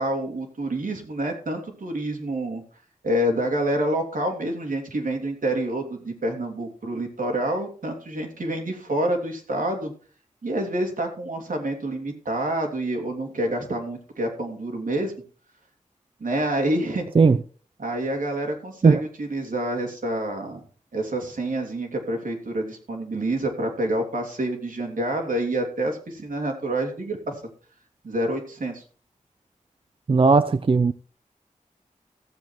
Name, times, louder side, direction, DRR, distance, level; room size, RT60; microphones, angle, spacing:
voice 1, 0.0-2.6 3.0-9.9 10.4-15.1 16.2-17.0 17.8-20.6 20.9-27.3 28.0-28.8, right 1 dB, 80° right, 2.7 m, -27 dB
voice 2, 30.1-30.9, right 4 dB, 40° right, 0.5 m, -17 dB
15.0 x 7.5 x 4.6 m
wide cardioid pair, 70°, 14 cm